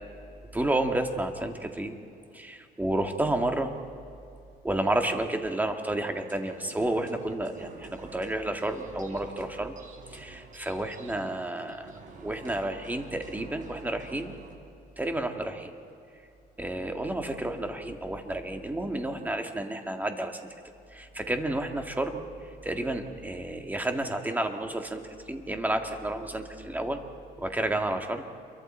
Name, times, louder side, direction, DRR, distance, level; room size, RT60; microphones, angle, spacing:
voice 1, 0.5-2.0 2.3-3.7 4.6-9.8 10.1-11.9 12.2-14.4 15.0-15.7 16.6-20.4 20.9-22.2 22.6-25.0 25.3-27.0 27.4-28.2, right 1 dB, 10° right, 5 dB, 1.9 m, -31 dB
sound 1, 6.3-14.6, right 4 dB, 50° right, 3.4 m, -50 dB
28.5 x 23.5 x 4.4 m, 2.5 s
cardioid pair, 110°, 17 cm